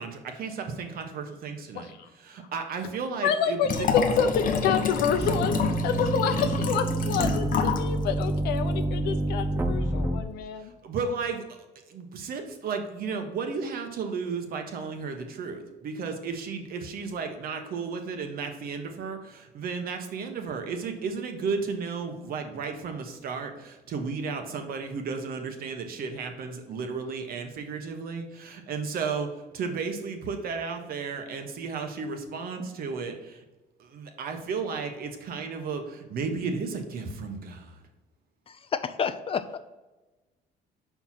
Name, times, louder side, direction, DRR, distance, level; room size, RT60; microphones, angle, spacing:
voice 1, 0.0-1.9 2.2-3.9 10.6-11.4 11.9-33.4 33.8-37.8, right 5 dB, 60° right, 5 dB, 1.1 m, -34 dB
voice 2, 1.7-2.1 3.2-10.7, left 7 dB, 80° left, 8 dB, 0.8 m, -28 dB
Liquid, 3.6-7.9 8.2-8.3, left 6 dB, 55° left, 0.9 m, -28 dB
sound 1, 5.2-10.2, right 2 dB, 15° right, 0.6 m, -28 dB
voice 3, 38.5-39.6, left 6 dB, 35° left, 12 dB, 0.5 m, -30 dB
5.5 x 4.6 x 5.7 m, 1.1 s
cardioid pair, 110°, 17 cm